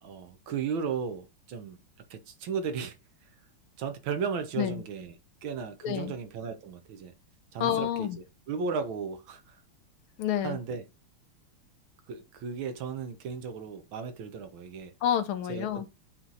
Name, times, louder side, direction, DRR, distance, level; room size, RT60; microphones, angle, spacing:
voice 1, 0.0-1.8 2.1-3.0 3.8-5.1 5.4-7.1 7.5-8.1 8.5-9.6 10.4-10.8 12.1-14.9 15.5-15.8, right 6 dB, 70° right, 1.5 m, -35 dB
voice 2, 5.8-6.1 7.6-8.2 10.2-10.6 15.0-15.9, left 10 dB, 80° left, 1.5 m, -29 dB
8.3 x 3.1 x 3.8 m
omnidirectional pair, 2.4 m